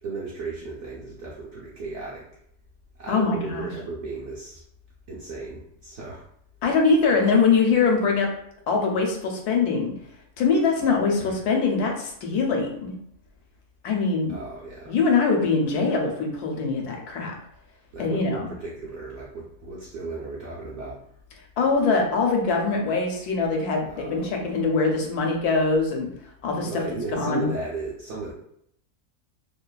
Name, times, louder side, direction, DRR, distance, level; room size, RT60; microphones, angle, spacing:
voice 1, 0.0-2.3 3.0-4.6 5.1-6.2 7.2-7.3 11.2-11.3 14.3-14.9 17.9-21.0 23.9-24.3 26.6-28.3, right 3 dB, 65° right, -6 dB, 0.7 m, -35 dB
voice 2, 3.1-3.7 6.6-8.3 8.7-9.9 10.4-12.9 13.8-14.3 14.9-17.3 18.0-18.5 21.6-26.1 26.4-26.7 27.1-27.5, left 4 dB, 80° left, 1 dB, 1.1 m, -23 dB
2.8 x 2.3 x 2.2 m, 0.71 s
omnidirectional pair, 1.7 m